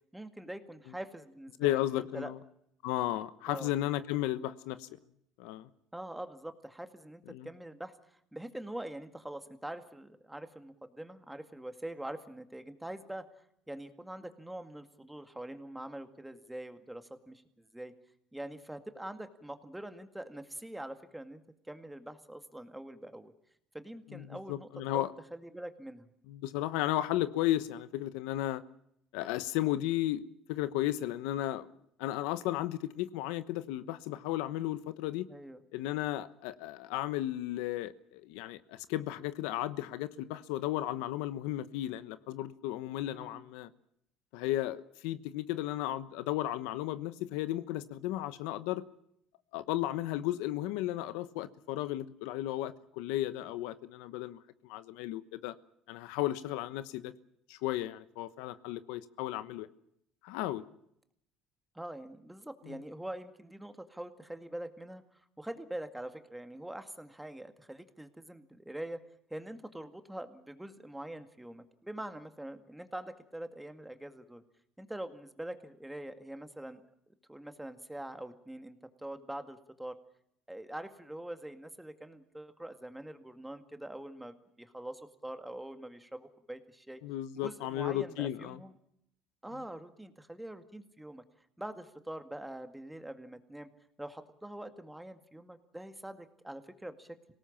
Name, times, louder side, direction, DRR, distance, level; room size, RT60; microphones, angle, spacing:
voice 1, 0.1-2.3 3.5-3.7 5.9-13.2 13.7-17.9 18.3-23.3 23.7-26.1 35.3-35.6 43.0-43.4 61.7-65.0 65.4-69.0 69.3-74.4 74.8-76.8 77.3-79.9 80.5-87.0 87.4-88.7 89.4-91.2 91.6-93.7 94.0-97.3, right 1 dB, 5° right, 2.0 m, -44 dB
voice 2, 1.6-2.4 2.8-4.9 5.4-5.7 7.3-7.5 24.1-25.1 26.3-28.6 29.1-31.7 32.0-35.3 35.7-43.7 44.3-48.8 49.5-55.5 55.9-57.1 57.5-59.7 60.2-60.6 62.6-62.8 87.0-88.6, left 14 dB, 90° left, 1.1 m, -34 dB
25.5 x 18.5 x 7.3 m
cardioid pair, 115°, 0 cm